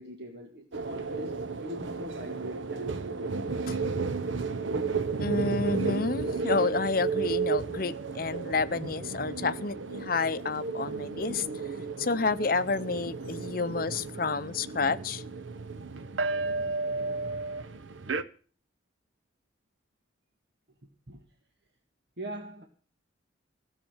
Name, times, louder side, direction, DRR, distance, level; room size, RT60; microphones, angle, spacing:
voice 1, 0.0-3.5 21.1-21.2 22.2-22.7, right 1 dB, 60° right, 1.6 m, -42 dB
sound 1, 0.7-18.2, right 4 dB, 80° right, 0.9 m, -33 dB
voice 2, 5.2-11.5 12.0-15.2, left 4 dB, 50° left, 0.7 m, -30 dB
16.0 x 7.3 x 8.8 m
head